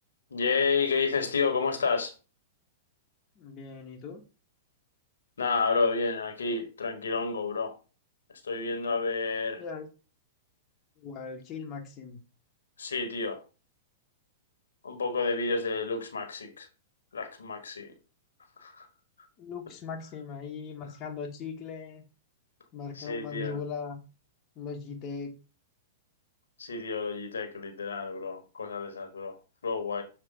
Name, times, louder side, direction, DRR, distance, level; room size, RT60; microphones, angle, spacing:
voice 1, 0.3-2.1 5.4-7.7 8.4-9.6 12.8-13.4 14.8-16.7 17.1-17.9 18.6-18.8 23.0-23.6 26.6-29.4 29.6-30.0, left 4 dB, 80° left, 1.3 m, -30 dB
voice 2, 3.4-4.2 9.6-9.9 11.0-12.2 19.4-22.0 22.7-24.0 24.5-25.4, left 5 dB, 35° left, 1.2 m, -39 dB
6.6 x 3.2 x 4.9 m
hypercardioid pair, 110°, 0 cm